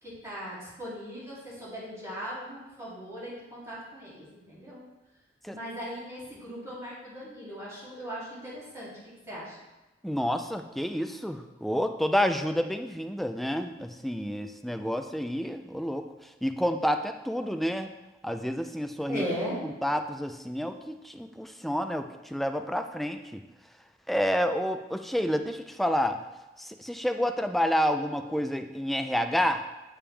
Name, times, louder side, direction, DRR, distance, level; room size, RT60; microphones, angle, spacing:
voice 1, 0.0-4.8 5.5-8.9 9.3-9.6 19.1-19.6, equal, 15° right, -9 dB, 2.8 m, -38 dB
voice 2, 10.0-16.0 16.4-17.9 18.2-19.2 19.6-23.4 24.1-26.2 26.6-29.6, equal, ahead, 6 dB, 0.4 m, -29 dB
8.6 x 7.2 x 3.4 m, 1.1 s
head